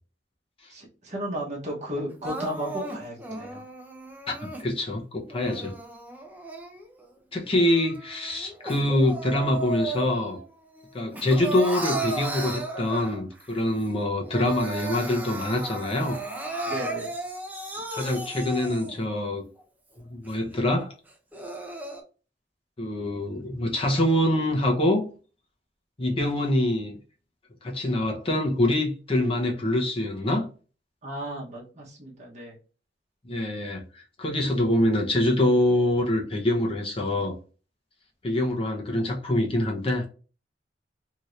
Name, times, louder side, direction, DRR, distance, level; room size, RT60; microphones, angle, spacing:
voice 1, 0.7-3.6 16.7-17.1 31.0-32.6, equal, 40° right, 1.0 m, -34 dB
Crying sobbing, 2.2-4.7 5.3-7.1 7.5-10.4 10.8-13.4 13.8-13.9 14.2-19.1 19.6-19.7 20.3-20.4 21.1-22.0, right 2 dB, 10° right, 0.5 m, -35 dB
voice 2, 4.3-5.7 7.3-10.4 10.9-16.2 17.9-19.4 20.1-20.9 22.8-25.1 26.0-27.0 27.6-30.5 33.2-37.4 38.2-40.1, left 1 dB, 30° left, 0.7 m, -25 dB
2.8 x 2.5 x 3.1 m
head